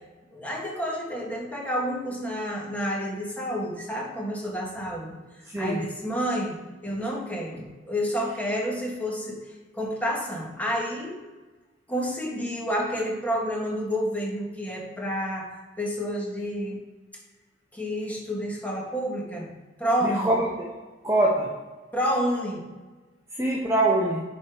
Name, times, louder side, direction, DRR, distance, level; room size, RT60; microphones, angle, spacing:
voice 1, 0.3-5.2 5.6-9.5 9.7-11.2 11.9-16.8 17.7-19.5 19.8-20.3 21.9-22.6, equal, 10° left, -3 dB, 1.9 m, -29 dB
voice 2, 5.5-5.8 20.0-20.7 21.0-21.5 23.3-24.2, right 1 dB, 15° right, -3 dB, 0.9 m, -24 dB
10.5 x 4.4 x 5.0 m, 1.3 s
head